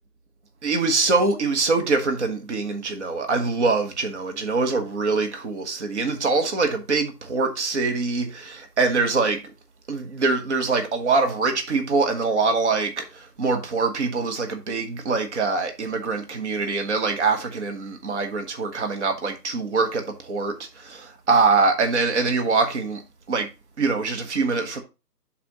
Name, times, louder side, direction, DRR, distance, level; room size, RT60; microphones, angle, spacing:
voice 1, 0.6-9.4 9.9-23.0 23.3-23.5 23.8-24.8, right 4 dB, 45° right, 1.2 m, -24 dB
10.0 x 4.3 x 2.9 m
figure-of-eight pair, 145°, 48 cm